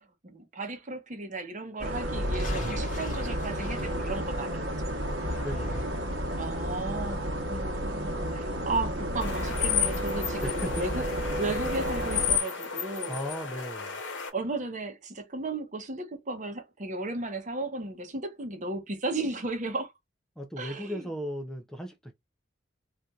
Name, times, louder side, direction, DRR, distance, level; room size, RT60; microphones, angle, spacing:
voice 1, 0.2-4.7 6.4-11.1 11.4-13.1 14.3-19.9 20.6-21.0, right 2 dB, 40° right, 0.8 m, -35 dB
sound 1, 1.8-12.4, equal, 85° right, 1.0 m, -32 dB
sound 2, 2.0-4.6 5.1-6.2, equal, 45° left, 1.6 m, -37 dB
voice 2, 5.4-5.8 10.4-11.1 13.1-14.0 20.4-22.1, equal, 5° left, 0.4 m, -37 dB
sound 3, 9.2-14.3, left 7 dB, 70° left, 0.9 m, -32 dB
4.1 x 2.5 x 2.3 m
head